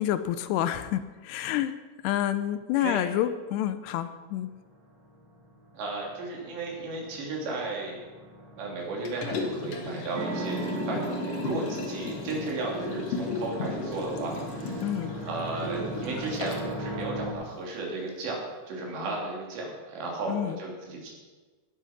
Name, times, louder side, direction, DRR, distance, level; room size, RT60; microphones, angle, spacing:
voice 1, 0.0-1.7 2.0-4.6 14.8-15.1 20.3-20.6, left 12 dB, 80° left, 12 dB, 2.7 m, -28 dB
sound 1, 4.3-17.3, equal, 35° right, 2.4 m, -41 dB
voice 2, 5.8-8.0 8.6-14.9 15.3-18.4 18.7-21.1, right 3 dB, 80° right, -2 dB, 5.2 m, -34 dB
Liquid, 9.0-16.7 17.1-17.2, left 3 dB, 65° left, 1.5 m, -35 dB
sound 2, 10.1-17.4, right 4 dB, 60° right, 1.3 m, -40 dB
17.5 x 8.5 x 6.0 m, 1.3 s
omnidirectional pair, 5.0 m